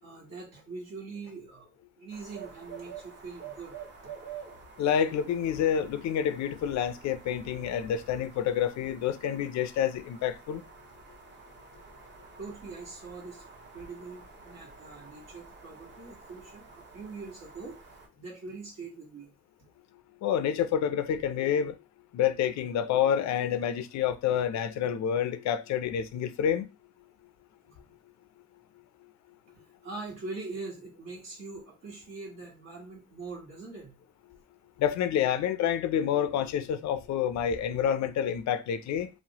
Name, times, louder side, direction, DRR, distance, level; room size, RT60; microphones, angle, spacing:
voice 1, 0.0-4.1 12.4-19.3 27.6-27.8 29.5-34.0, right 3 dB, 60° right, 1.4 m, -43 dB
sound 1, 2.1-18.1, right 6 dB, 35° right, 0.9 m, -49 dB
voice 2, 4.8-10.6 20.2-21.8 22.1-26.7 34.8-39.1, left 9 dB, 65° left, 0.4 m, -28 dB
3.0 x 2.1 x 2.8 m
cardioid pair, 90°, 30 cm